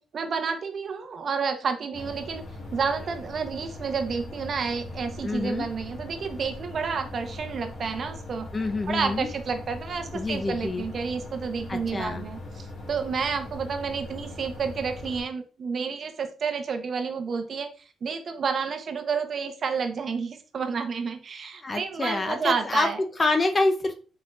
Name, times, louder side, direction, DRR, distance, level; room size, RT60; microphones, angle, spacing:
voice 1, 0.0-2.4 2.7-8.5 8.9-17.7 18.0-23.0, right 5 dB, 50° right, 7 dB, 0.7 m, -30 dB
sound 1, 1.9-15.2, left 2 dB, 60° left, 1.8 m, -40 dB
voice 2, 5.2-5.7 8.5-9.3 10.1-10.8 11.7-12.2 21.6-23.9, left 2 dB, 30° left, 6 dB, 0.7 m, -27 dB
4.4 x 4.1 x 2.4 m, 0.36 s
cardioid pair, 90°, 0 cm